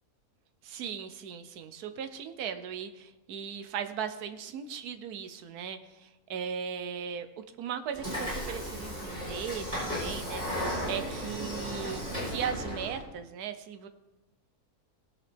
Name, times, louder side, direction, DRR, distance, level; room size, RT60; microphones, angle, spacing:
voice 1, 0.6-13.9, right 7 dB, 80° right, 9 dB, 1.3 m, -38 dB
Train / Sliding door, 7.9-13.0, equal, 25° right, 4.2 m, -35 dB
18.5 x 7.0 x 3.4 m, 1.1 s
omnidirectional pair, 1.6 m